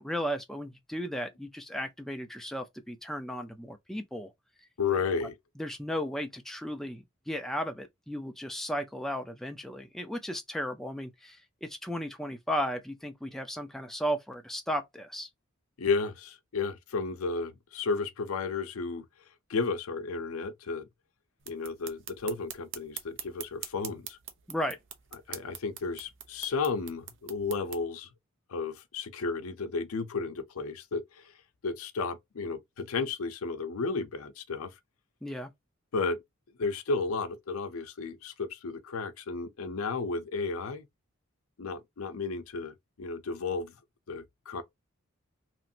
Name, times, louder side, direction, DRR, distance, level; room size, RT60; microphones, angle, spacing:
voice 1, 0.0-4.3 5.6-15.3 24.5-24.8 35.2-35.5, equal, ahead, 0.4 m, -35 dB
voice 2, 4.8-5.3 15.8-19.0 19.5-20.9 21.5-24.2 25.3-28.1 28.5-31.3 31.6-34.7 35.9-36.2 36.6-40.9 41.6-43.7 44.1-44.6, left 4 dB, 80° left, 0.6 m, -33 dB
sound 1, 21.4-27.8, right 9 dB, 65° right, 0.6 m, -44 dB
2.9 x 2.5 x 2.7 m
head